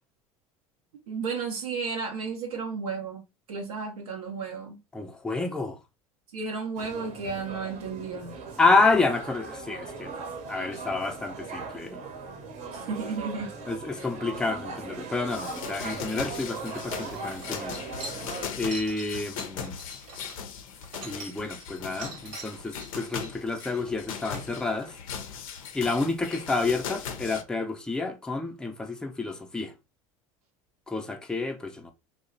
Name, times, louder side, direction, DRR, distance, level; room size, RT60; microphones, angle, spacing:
voice 1, 1.1-3.2 3.5-4.8 6.3-8.4 12.7-13.5 14.0-14.1, right 5 dB, 80° right, 0.6 m, -33 dB
voice 2, 4.9-5.8 8.6-10.1 10.5-12.0 13.7-17.8 18.6-19.8 21.0-25.0 25.7-29.7 30.9-31.9, left 3 dB, 5° left, 0.4 m, -29 dB
sound 1, 6.8-18.5, right 4 dB, 40° right, 0.7 m, -39 dB
sound 2, 15.3-27.4, left 7 dB, 75° left, 0.5 m, -39 dB
sound 3, 17.0-21.7 22.0-24.9, right 3 dB, 65° right, 1.0 m, -44 dB
2.7 x 2.0 x 2.5 m
hypercardioid pair, 80°, 18 cm